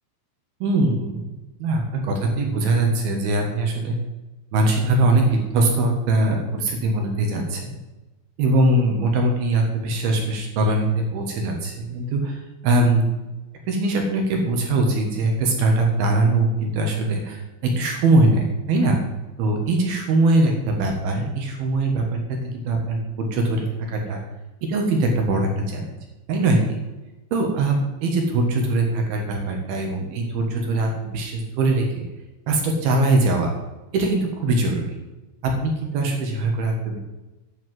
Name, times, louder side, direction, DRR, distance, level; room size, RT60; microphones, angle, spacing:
voice 1, 0.6-4.0 4.5-7.8 8.4-13.1 13.7-17.4 17.8-19.0 19.4-24.2 24.7-26.0 26.3-26.8 27.3-32.0 32.5-33.5 33.9-35.0 35.4-37.0, right 2 dB, 65° right, 2 dB, 2.8 m, -22 dB
10.5 x 5.8 x 7.6 m, 1.1 s
omnidirectional pair, 5.6 m